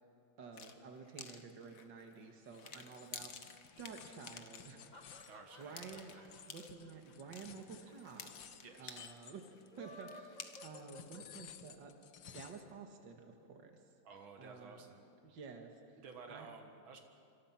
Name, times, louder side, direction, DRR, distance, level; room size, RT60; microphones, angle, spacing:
voice 1, 0.4-5.2 5.6-6.1 6.5-12.0 12.2-13.8 14.4-14.9 15.2-16.0 16.3-16.5, right 5 dB, 65° right, 4 dB, 2.4 m, -52 dB
sound 1, 0.5-9.3 9.5-10.8, left 6 dB, 50° left, 1.5 m, -53 dB
sound 2, 2.4-9.9 10.4-12.7, left 9 dB, 70° left, 1.7 m, -57 dB
sound 3, 4.6-7.9 8.2-8.3 8.5-8.6 9.6-11.7, left 1 dB, 20° left, 2.1 m, -56 dB
voice 2, 5.3-6.3 8.6-9.1 14.0-15.1 16.0-17.0, right 4 dB, 90° right, 4 dB, 2.6 m, -54 dB
27.0 x 25.5 x 5.9 m, 2.7 s
omnidirectional pair, 2.1 m